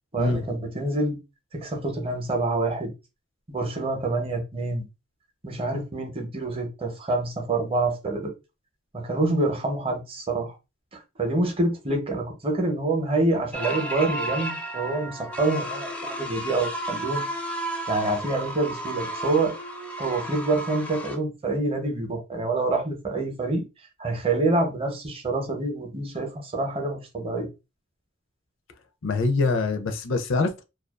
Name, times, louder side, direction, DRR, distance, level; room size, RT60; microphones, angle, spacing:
voice 1, 0.1-1.2 1.5-2.9 3.5-4.8 5.4-8.3 8.9-10.5 11.2-17.2 17.9-19.6 20.0-23.6 24.0-27.5, right 2 dB, 30° right, 0.7 m, -26 dB
sound 1, 13.5-21.2, right 1 dB, 5° left, 0.4 m, -33 dB
voice 2, 29.0-30.7, left 3 dB, 65° left, 0.5 m, -24 dB
2.3 x 2.3 x 2.3 m
head